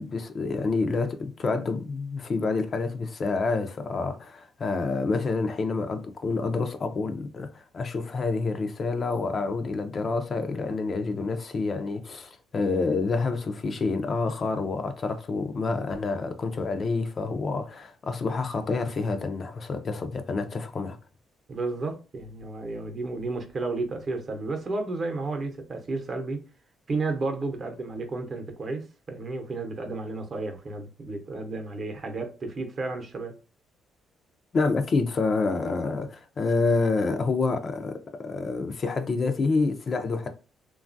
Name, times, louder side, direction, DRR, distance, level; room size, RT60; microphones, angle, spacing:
voice 1, 0.0-21.0 34.5-40.3, left 3 dB, 45° left, 0.4 m, -28 dB
voice 2, 21.5-26.4 26.9-33.4, right 3 dB, 45° right, 0.7 m, -32 dB
3.0 x 2.3 x 2.5 m
cardioid pair, 90°, 0 cm